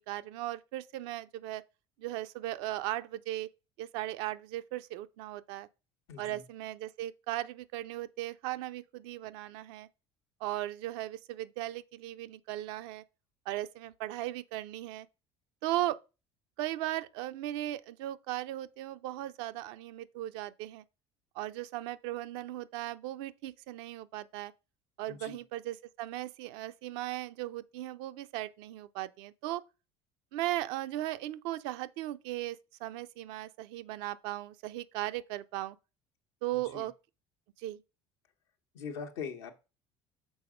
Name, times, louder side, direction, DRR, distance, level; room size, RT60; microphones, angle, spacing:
voice 1, 0.0-1.6 2.0-3.5 3.8-5.7 6.2-9.9 10.4-13.0 13.5-15.1 15.6-16.0 16.6-20.8 21.4-24.5 25.0-29.6 30.3-35.8 36.4-36.9 37.6-37.8, right 15 dB, 70° right, 0.5 m, -37 dB
voice 2, 6.1-6.4 25.1-25.4 36.7-36.8 38.7-39.5, left 6 dB, 75° left, 1.1 m, -41 dB
6.2 x 4.1 x 5.0 m
hypercardioid pair, 65°, 14 cm